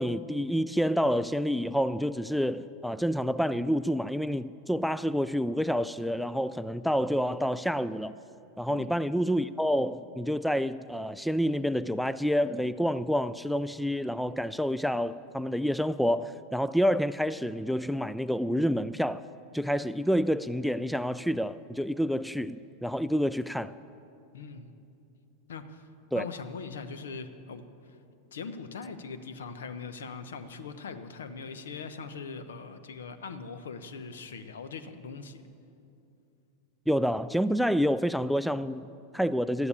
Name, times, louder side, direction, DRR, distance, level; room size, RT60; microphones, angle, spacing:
voice 1, 0.0-8.1 8.6-19.3 19.5-23.7 26.1-26.2 36.9-39.7, equal, ahead, 0.3 m, -28 dB
voice 2, 24.3-24.7 25.5-25.9 26.1-28.0 28.3-35.4, left 5 dB, 80° left, 0.9 m, -41 dB
12.5 x 9.6 x 8.6 m
hypercardioid pair, 95°, 0 cm